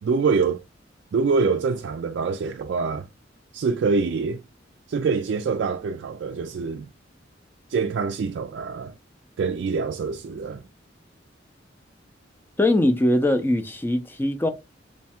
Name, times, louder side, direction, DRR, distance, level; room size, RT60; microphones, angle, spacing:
voice 1, 0.0-0.6 1.1-3.1 3.5-4.4 4.9-6.9 7.7-8.9 9.4-10.6, right 4 dB, 60° right, 0.3 m, -25 dB
voice 2, 12.6-14.5, left 1 dB, 10° left, 0.4 m, -21 dB
3.2 x 2.3 x 4.2 m
head